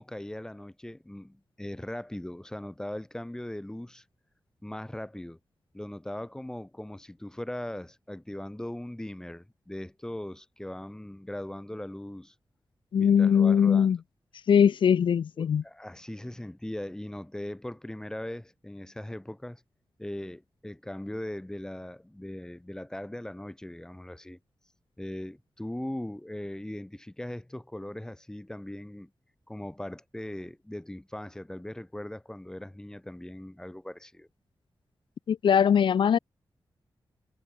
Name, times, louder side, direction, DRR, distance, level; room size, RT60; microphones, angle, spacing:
voice 1, 0.0-4.0 4.6-5.4 5.7-12.3 12.9-13.9 15.4-19.6 20.0-24.4 25.0-29.1 29.5-34.3, left 1 dB, 10° left, 6.5 m, -39 dB
voice 2, 12.9-14.0 14.5-15.6 35.3-36.2, left 8 dB, 85° left, 0.7 m, -21 dB
wide cardioid pair, 150°, 8 cm